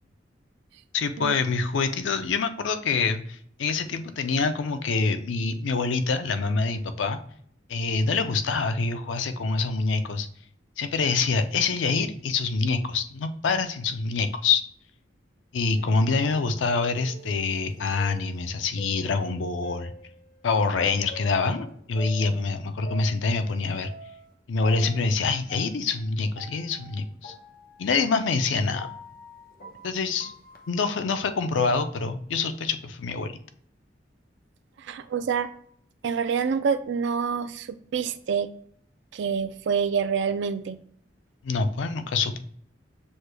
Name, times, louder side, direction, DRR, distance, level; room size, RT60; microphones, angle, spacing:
voice 1, 0.9-7.2 7.7-10.3 10.8-14.6 15.5-19.9 20.4-23.9 24.5-27.3 27.8-28.9 29.8-30.3 30.7-33.3 41.4-42.4, left 4 dB, 85° left, 9 dB, 0.4 m, -26 dB
sound 1, 15.7-20.6 21.1-24.3 24.6-30.7, left 1 dB, 50° left, 0.7 m, -46 dB
voice 2, 34.8-35.5 36.0-38.5 39.1-40.8, right 6 dB, 70° right, 12 dB, 0.3 m, -27 dB
6.2 x 2.2 x 3.2 m, 0.63 s
head